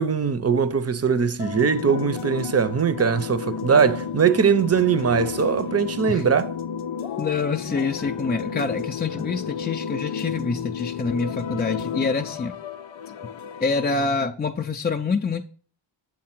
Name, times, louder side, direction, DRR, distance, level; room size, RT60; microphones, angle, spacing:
voice 1, 0.0-6.5, right 6 dB, 35° right, 0.6 m, -21 dB
sound 1, 1.4-14.0, left 7 dB, 80° left, 0.7 m, -32 dB
voice 2, 7.2-12.6 13.6-15.4, left 4 dB, 20° left, 0.5 m, -26 dB
7.7 x 3.8 x 5.9 m
cardioid pair, 70°, 47 cm